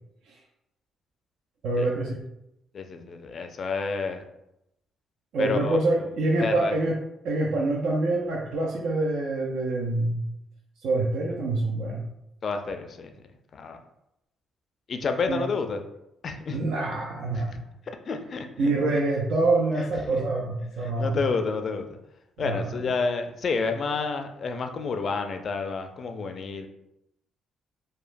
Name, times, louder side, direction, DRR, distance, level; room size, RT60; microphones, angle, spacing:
voice 1, 1.6-2.2 5.3-7.0 7.2-10.2 10.8-12.0 15.3-15.4 16.5-17.6 18.6-21.2 22.4-22.9, right 2 dB, 70° right, -1 dB, 0.4 m, -26 dB
voice 2, 2.7-4.2 5.4-5.8 6.4-6.8 12.4-13.1 13.5-13.8 14.9-15.8 16.2-16.6 17.4-17.5 18.1-18.7 19.7-20.2 21.0-22.0 22.4-26.7, left 4 dB, 55° left, 6 dB, 0.3 m, -29 dB
2.9 x 2.2 x 2.5 m, 0.84 s
hypercardioid pair, 50°, 0 cm